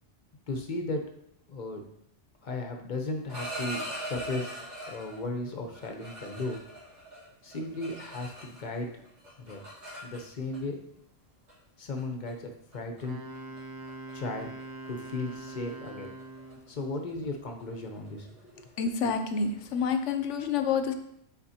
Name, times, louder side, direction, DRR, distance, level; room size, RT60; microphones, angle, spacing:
voice 1, 0.5-1.1 1.5-1.8 2.4-4.6 4.9-6.6 7.4-8.9 9.4-9.7 10.0-10.8 11.8-13.2 14.1-14.5 14.9-16.1 16.7-18.6, left 2 dB, 45° left, 3 dB, 0.8 m, -35 dB
sound 1, 3.3-5.2 5.7-8.8 9.0-10.6 11.5-11.6 12.0-12.3 12.7-13.0 13.3-13.6 13.9-14.1 14.4-19.8, equal, 80° right, 2.3 m, -42 dB
Wind instrument woodwind instrument, 13.0-16.8, right 2 dB, 35° right, 0.4 m, -43 dB
voice 2, 18.8-20.9, left 6 dB, 80° left, 8 dB, 1.0 m, -28 dB
8.4 x 4.3 x 2.8 m, 0.75 s
omnidirectional pair, 1.2 m